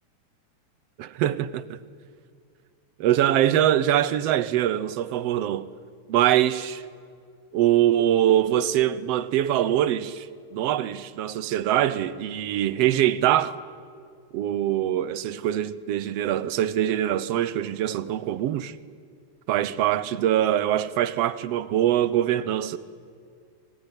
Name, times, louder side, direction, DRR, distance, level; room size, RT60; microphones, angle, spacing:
voice 1, 1.0-1.8 3.0-5.7 6.1-6.8 7.5-10.3 10.5-13.6 14.3-18.7 19.5-22.8, right 12 dB, 70° right, 1.6 m, -23 dB
25.0 x 23.5 x 9.9 m
omnidirectional pair, 3.6 m